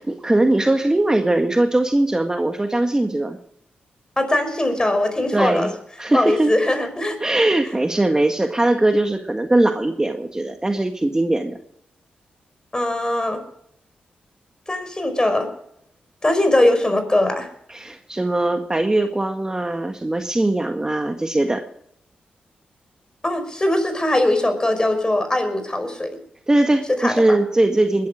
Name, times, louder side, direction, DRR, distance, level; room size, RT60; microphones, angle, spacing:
voice 1, 0.0-3.4 5.3-6.5 7.2-11.6 17.7-21.6 26.5-28.1, right 2 dB, 20° right, 5 dB, 1.7 m, -20 dB
voice 2, 4.2-5.7 6.1-7.2 12.7-13.4 14.7-15.5 16.2-17.5 23.2-26.1 27.0-27.1, left 1 dB, 25° left, 8 dB, 5.2 m, -20 dB
21.0 x 12.0 x 5.1 m, 0.70 s
cardioid pair, 55°, 3 cm